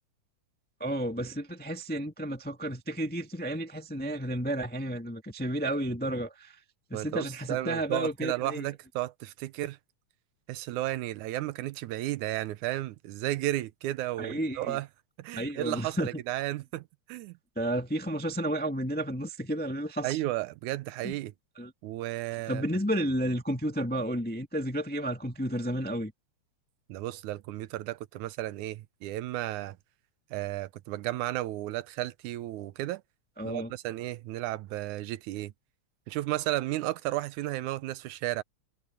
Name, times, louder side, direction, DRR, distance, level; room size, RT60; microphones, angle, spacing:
voice 1, 0.8-6.6 6.9-8.6 14.2-14.8 15.3-16.1 17.6-20.2 21.0-21.1 21.6-21.7 22.5-26.1 33.4-33.7, right 1 dB, 10° left, 0.5 m, -32 dB
voice 2, 6.9-9.8 10.5-14.9 15.2-17.4 20.0-21.3 21.8-22.8 26.9-29.8 30.3-33.0 33.5-35.5 36.1-38.4, right 16 dB, 80° right, 2.1 m, -33 dB
omnidirectional pair, 3.5 m